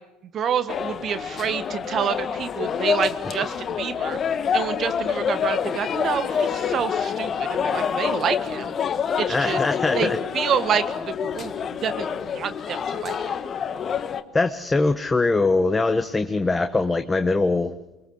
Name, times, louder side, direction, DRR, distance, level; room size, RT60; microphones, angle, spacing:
voice 1, 0.3-8.7 9.2-9.6 9.9-13.3, right 7 dB, 45° right, 12 dB, 1.6 m, -28 dB
sound 1, 0.7-14.2, left 7 dB, 40° left, 1.5 m, -27 dB
voice 2, 9.3-10.2 14.3-17.7, left 3 dB, 15° left, 8 dB, 1.3 m, -22 dB
24.0 x 23.0 x 8.0 m, 0.95 s
hypercardioid pair, 75°, 0 cm